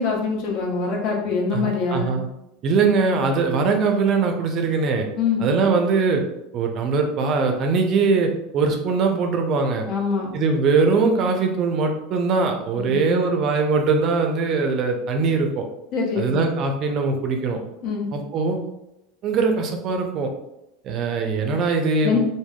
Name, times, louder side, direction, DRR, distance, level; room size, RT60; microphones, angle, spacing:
voice 1, 0.0-2.2 5.1-5.4 9.9-10.3 12.8-13.2 15.9-16.4 17.8-18.1 22.0-22.2, left 5 dB, 60° left, -1 dB, 0.8 m, -24 dB
voice 2, 1.5-2.3 2.6-5.1 5.4-6.2 6.5-9.9 10.3-15.7 16.2-17.6 18.1-18.6 19.2-20.3 20.8-22.2, right 4 dB, 50° right, 4 dB, 0.4 m, -21 dB
3.4 x 2.1 x 2.2 m, 0.87 s
hypercardioid pair, 90°, 0 cm